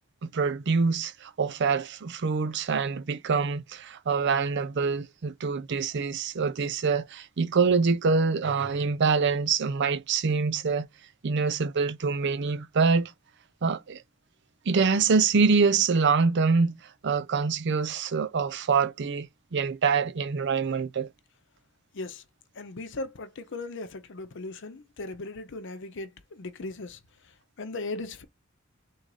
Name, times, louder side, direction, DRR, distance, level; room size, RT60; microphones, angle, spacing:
voice 1, 0.2-10.9 11.2-13.1 13.6-14.0 14.7-16.8 17.0-21.1, right 5 dB, 60° right, 0.5 m, -25 dB
voice 2, 22.6-27.0 27.6-28.2, left 2 dB, 65° left, 0.7 m, -37 dB
3.8 x 2.6 x 4.7 m
head